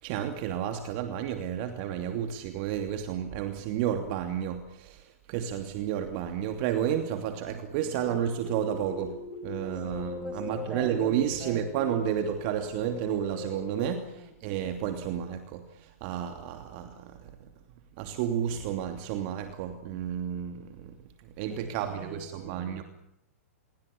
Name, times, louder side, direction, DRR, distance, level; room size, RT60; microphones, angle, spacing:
voice 1, 0.0-17.3 18.0-20.9 21.4-22.8, right 9 dB, 45° right, 6 dB, 2.9 m, -31 dB
sound 1, 8.0-14.0, left 6 dB, 40° left, 3.9 m, -41 dB
voice 2, 9.6-11.9 14.1-14.3 21.5-22.8, right 2 dB, 10° right, 7 dB, 6.9 m, -47 dB
28.0 x 23.0 x 8.6 m, 0.79 s
hypercardioid pair, 115°, 8 cm